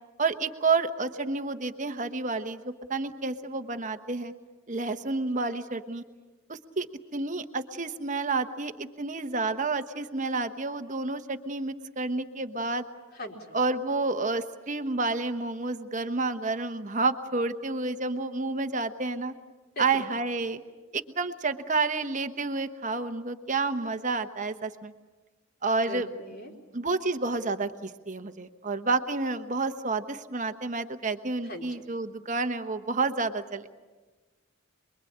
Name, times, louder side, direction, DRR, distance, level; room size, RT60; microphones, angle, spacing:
voice 1, 0.2-4.3 4.7-6.0 6.5-6.9 7.1-12.9 13.5-19.3 19.8-20.6 20.9-24.9 25.6-26.1 26.7-33.7, right 3 dB, 35° right, 8 dB, 1.2 m, -30 dB
voice 2, 13.1-13.6 19.8-20.0 25.9-26.5 31.4-31.7, equal, 45° left, 0 dB, 4.2 m, -39 dB
27.5 x 22.5 x 8.7 m, 1.3 s
head